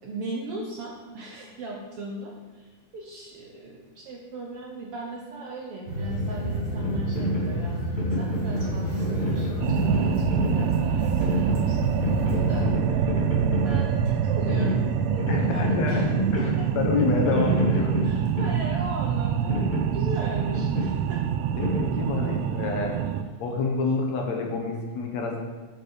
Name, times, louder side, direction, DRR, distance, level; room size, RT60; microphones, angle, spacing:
voice 1, 0.0-7.8 8.2-13.2 13.5-16.1 16.4-16.7 18.0-21.2, right 1 dB, 65° right, -1 dB, 1.5 m, -38 dB
sound 1, 5.9-12.6, right 1 dB, 35° right, 2.0 m, -29 dB
sound 2, 6.7-22.5, equal, 20° left, 1.3 m, -30 dB
sound 3, 9.6-23.2, right 9 dB, 85° right, 1.4 m, -26 dB
voice 2, 15.3-16.1 16.3-18.0 21.6-23.1 23.4-25.4, left 4 dB, 65° left, 1 dB, 2.3 m, -28 dB
8.7 x 4.9 x 6.5 m, 1.3 s
omnidirectional pair, 3.5 m